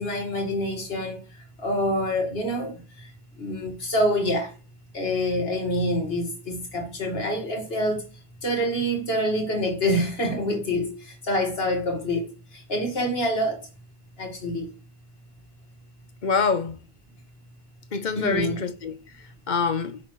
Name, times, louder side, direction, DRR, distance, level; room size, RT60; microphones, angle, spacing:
voice 1, 0.0-3.1 3.4-4.5 4.9-8.1 8.4-13.7 14.2-14.7 18.2-18.6, equal, 65° left, 2.1 m, -26 dB
voice 2, 16.2-16.8 17.9-20.0, left 5 dB, 50° left, 0.9 m, -26 dB
8.8 x 6.0 x 3.1 m
omnidirectional pair, 1.1 m